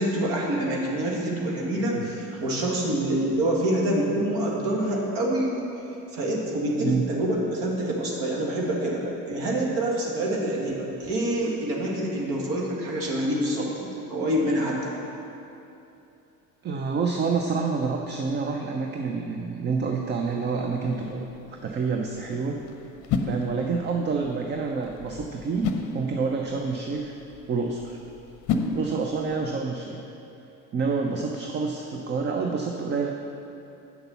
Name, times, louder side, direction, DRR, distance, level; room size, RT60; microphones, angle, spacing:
voice 1, 0.0-5.7 6.1-14.9, right 1 dB, 50° right, -2 dB, 2.0 m, -26 dB
voice 2, 16.6-21.3 21.6-22.6 23.2-27.1 27.5-28.0 28.7-30.0 30.7-33.1, right 4 dB, 20° right, 2 dB, 0.5 m, -28 dB
sound 1, 20.3-29.5, left 4 dB, 40° left, 0.8 m, -34 dB
8.1 x 6.6 x 5.8 m, 2.8 s
figure-of-eight pair, 65°, 49 cm